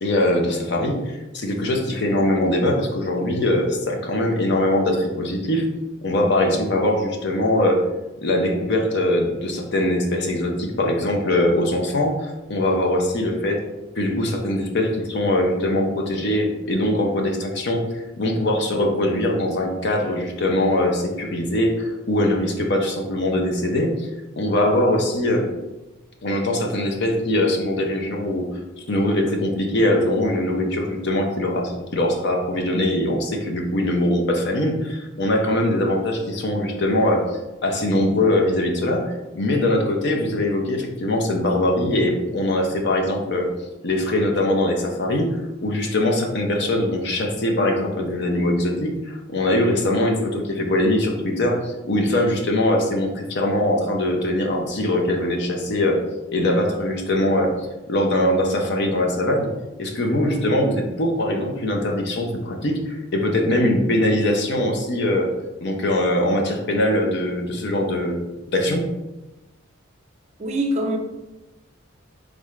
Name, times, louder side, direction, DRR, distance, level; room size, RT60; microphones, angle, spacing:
voice 1, 0.0-5.7 6.0-7.9 8.2-13.6 14.0-24.1 24.4-25.5 26.2-43.5 43.8-56.0 56.3-57.6 57.9-59.5 59.8-65.3 65.6-68.2 68.5-68.9, left 1 dB, 55° left, 2 dB, 0.6 m, -22 dB
voice 2, 70.4-71.0, right 1 dB, 35° right, 3 dB, 0.4 m, -23 dB
3.7 x 3.5 x 3.1 m, 1.0 s
head